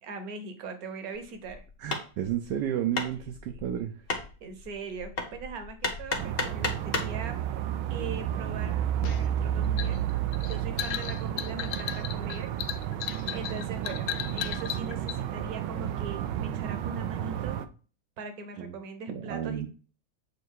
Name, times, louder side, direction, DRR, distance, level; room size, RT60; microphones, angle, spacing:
voice 1, 0.0-1.6 3.5-3.6 4.4-7.4 7.9-10.0 10.5-12.5 13.3-17.6 18.2-19.7, right 4 dB, 55° right, 7 dB, 1.3 m, -40 dB
Hammer, 1.1-7.2, left 3 dB, 35° left, 1.1 m, -35 dB
voice 2, 1.8-3.9 18.6-18.8 19.1-19.7, right 10 dB, 70° right, 4 dB, 1.1 m, -32 dB
sound 1, 6.2-17.7, right 10 dB, 90° right, 1.4 m, -31 dB
sound 2, 9.0-15.2, left 12 dB, 75° left, 1.1 m, -36 dB
8.0 x 2.7 x 4.6 m, 0.37 s
omnidirectional pair, 2.2 m